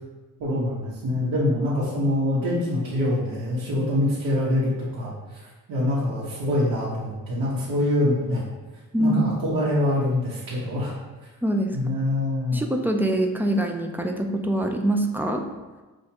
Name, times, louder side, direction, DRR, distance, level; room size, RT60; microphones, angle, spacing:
voice 1, 0.4-8.4 9.0-10.9 11.7-12.6, left 1 dB, 85° right, -8 dB, 1.2 m, -25 dB
voice 2, 11.4-11.9 12.5-15.4, right 1 dB, 5° right, 3 dB, 0.3 m, -24 dB
6.3 x 2.5 x 2.9 m, 1.2 s
cardioid pair, 115°, 35 cm